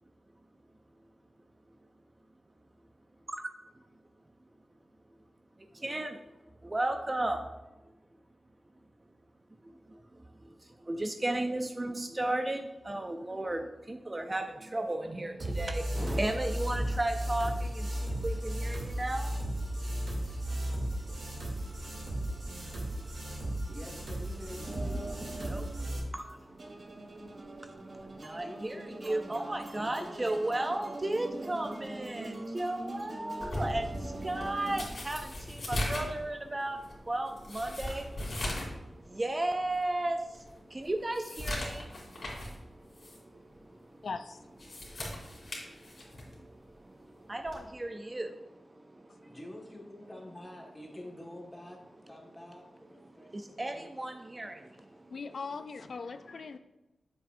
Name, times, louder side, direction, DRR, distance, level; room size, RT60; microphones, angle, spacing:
voice 1, 6.7-7.4 10.9-13.6 13.9-14.4 14.7-17.5 18.2-18.3 18.6-19.3 25.5-25.6 26.1-26.2 28.3-28.8 29.0-33.8 34.2-35.2 35.7-36.8 37.1-38.0 39.2-40.2 40.8-41.8 47.3-48.3 53.6-54.5, right 1 dB, 25° right, 6 dB, 0.4 m, -33 dB
sound 1, 15.4-26.0, right 1 dB, 75° right, 2.7 m, -35 dB
voice 2, 23.7-25.2 28.4-30.7 49.2-51.8 52.1-53.9, left 1 dB, 15° left, -1 dB, 1.6 m, -47 dB
sound 2, 24.6-34.8, right 2 dB, 40° right, 0.9 m, -43 dB
sound 3, 33.4-38.8 39.1-39.2 39.8-39.9 40.3-42.6 42.9-43.2 44.4-46.4 47.5-47.7, left 1 dB, 50° left, 2.8 m, -38 dB
voice 3, 44.0-44.4 55.1-56.6, left 4 dB, 65° left, 9 dB, 0.3 m, -39 dB
8.7 x 7.3 x 2.6 m, 0.99 s
wide cardioid pair, 120°, 0 cm